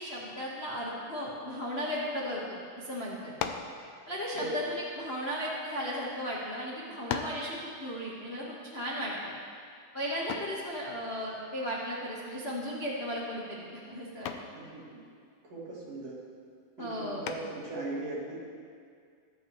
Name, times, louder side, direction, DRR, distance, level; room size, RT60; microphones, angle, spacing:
voice 1, 0.0-3.3 4.1-9.3 9.9-14.3 16.8-17.3, equal, 60° left, -6 dB, 0.6 m, -36 dB
sound 1, 3.4-3.8 4.7-5.9 6.5-6.6 7.1-7.5 10.3-10.6 12.5-12.9 13.3-13.6 14.2-14.6 17.2-17.7, left 8 dB, 80° left, 1.9 m, -37 dB
voice 2, 14.6-15.0 15.5-16.2 16.8-18.3, right 2 dB, 55° right, -6 dB, 3.2 m, -38 dB
21.5 x 7.4 x 3.1 m, 2.2 s
omnidirectional pair, 3.5 m